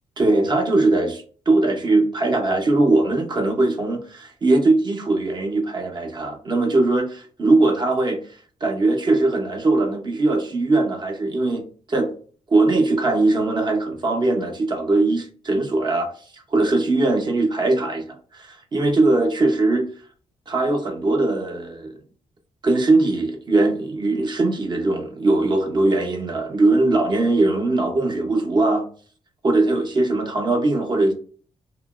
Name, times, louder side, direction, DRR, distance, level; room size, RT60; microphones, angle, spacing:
voice 1, 0.2-8.2 8.6-11.6 11.9-12.1 12.5-16.1 16.3-18.1 18.3-19.9 20.5-22.0 22.6-28.8 29.4-31.1, right 2 dB, 40° right, 0.8 m, -20 dB
2.9 x 2.6 x 2.3 m
cardioid pair, 115°, 12 cm